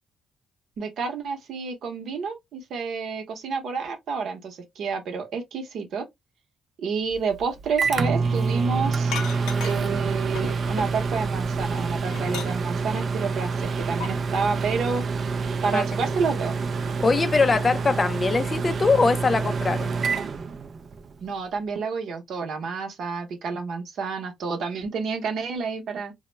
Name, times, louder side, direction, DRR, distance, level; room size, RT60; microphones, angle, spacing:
voice 1, 0.8-6.1 6.8-9.1 9.6-15.0 15.6-16.5 21.2-26.1, right 5 dB, 70° right, 0.7 m, -29 dB
Microwave oven, 7.1-21.1, right 4 dB, 50° right, 0.3 m, -27 dB
sound 1, 9.1-10.0 10.3-11.3 11.7-12.8 14.0-14.1, left 7 dB, 90° left, 0.5 m, -35 dB
voice 2, 15.7-16.1 17.0-19.9, left 4 dB, 30° left, 0.3 m, -22 dB
2.2 x 2.0 x 3.2 m
cardioid pair, 90°, 0 cm